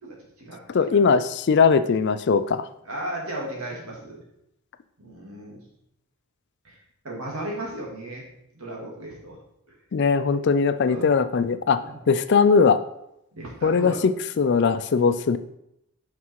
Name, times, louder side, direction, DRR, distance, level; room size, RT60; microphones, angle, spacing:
voice 1, 0.0-1.0 2.9-4.2 5.0-5.6 6.6-6.8 7.0-8.3 8.5-9.4 10.9-11.1 11.8-12.0 13.3-14.0, right 1 dB, 70° right, -2 dB, 2.4 m, -35 dB
voice 2, 0.7-2.6 9.9-11.8 12.1-12.8 13.6-13.9 14.4-15.4, left 5 dB, 50° left, 12 dB, 0.4 m, -20 dB
5.9 x 5.7 x 4.7 m, 0.80 s
head